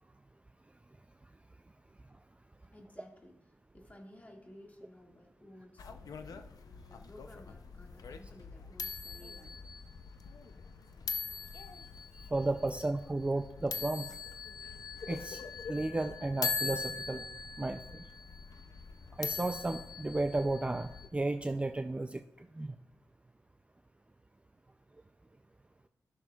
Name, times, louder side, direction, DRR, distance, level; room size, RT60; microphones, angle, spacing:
voice 1, 2.7-6.5 6.9-9.5, left 1 dB, 25° left, 1 dB, 1.9 m, -56 dB
sound 1, 5.8-21.1, left 5 dB, 80° left, 0.5 m, -42 dB
voice 2, 12.3-14.1 15.1-15.4 15.7-17.2 17.6-18.0 19.2-22.2 22.5-22.7, right 2 dB, 20° right, 7 dB, 0.4 m, -33 dB
15.5 x 6.2 x 2.3 m, 0.82 s
cardioid pair, 65°, 6 cm